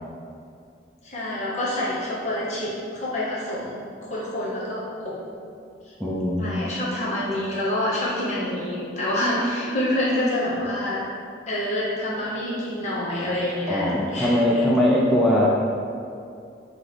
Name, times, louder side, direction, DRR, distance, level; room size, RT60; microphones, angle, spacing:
voice 1, 1.0-5.2 5.8-5.9 6.4-11.0 11.5-14.7, left 1 dB, 40° left, -7 dB, 0.8 m, -27 dB
voice 2, 6.0-6.4 13.7-15.5, left 1 dB, ahead, -5 dB, 0.4 m, -20 dB
3.0 x 3.0 x 4.0 m, 2.4 s
head